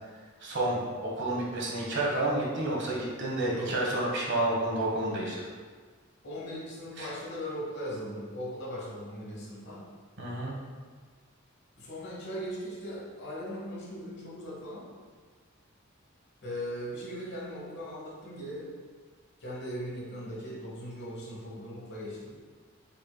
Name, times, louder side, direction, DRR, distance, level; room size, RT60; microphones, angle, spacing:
voice 1, 0.4-5.5 7.0-7.1 10.2-10.5, right 1 dB, 60° right, -3 dB, 1.1 m, -30 dB
voice 2, 3.5-3.9 6.2-9.9 11.8-14.9 16.4-18.8 19.4-22.4, equal, 55° left, -3 dB, 1.1 m, -39 dB
5.3 x 4.4 x 2.3 m, 1.5 s
head